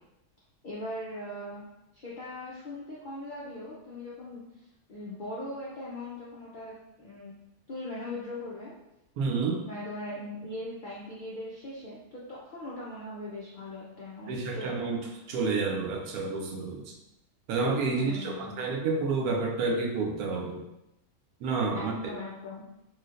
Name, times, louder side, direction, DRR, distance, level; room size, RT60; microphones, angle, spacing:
voice 1, 0.6-1.6 1.9-4.4 4.9-7.3 7.7-8.7 9.7-15.0 17.9-18.6 21.7-22.6, left 1 dB, 65° left, -6 dB, 0.4 m, -40 dB
voice 2, 9.2-9.6 14.3-16.9 17.5-20.6 21.4-22.1, right 4 dB, 80° right, 1 dB, 1.1 m, -29 dB
3.2 x 3.0 x 2.4 m, 0.89 s
omnidirectional pair, 1.5 m